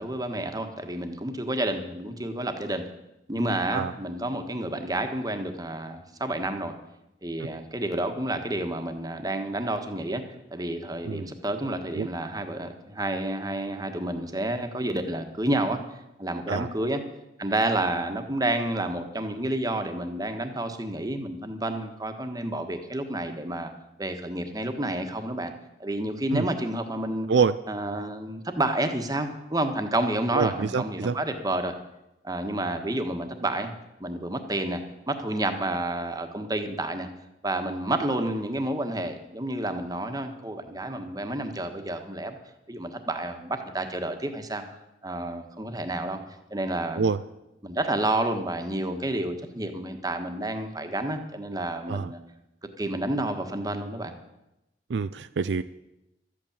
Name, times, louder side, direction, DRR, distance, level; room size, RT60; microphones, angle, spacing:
voice 1, 0.0-2.8 3.3-6.7 7.2-10.2 10.5-15.8 16.2-17.0 17.4-23.7 24.0-25.5 25.8-27.3 27.7-31.7 32.2-33.7 34.0-34.8 35.1-37.1 37.4-42.4 42.7-44.6 45.0-46.2 46.5-47.0 47.6-52.2 52.8-54.1, right 1 dB, 20° right, 6 dB, 1.3 m, -30 dB
voice 2, 30.3-31.1 47.0-47.2 51.9-52.1 54.9-55.6, right 5 dB, 70° right, 12 dB, 0.4 m, -25 dB
13.0 x 8.4 x 8.8 m, 0.91 s
head